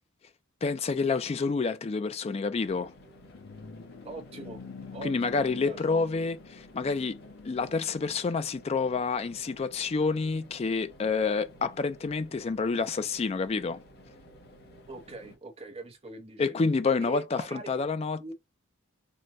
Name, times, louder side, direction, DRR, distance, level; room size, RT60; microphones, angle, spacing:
voice 1, 0.6-2.9 5.0-7.2 7.4-13.8 16.4-18.3, left 4 dB, 30° left, 0.3 m, -28 dB
sound 1, 2.6-15.4, equal, 50° left, 0.9 m, -54 dB
sound 2, 2.9-8.4, left 4 dB, 75° left, 0.7 m, -47 dB
voice 2, 4.0-4.6 4.9-6.0 14.9-16.5 17.0-17.8 18.2-18.3, right 2 dB, 30° right, 0.7 m, -43 dB
4.5 x 2.1 x 2.6 m
head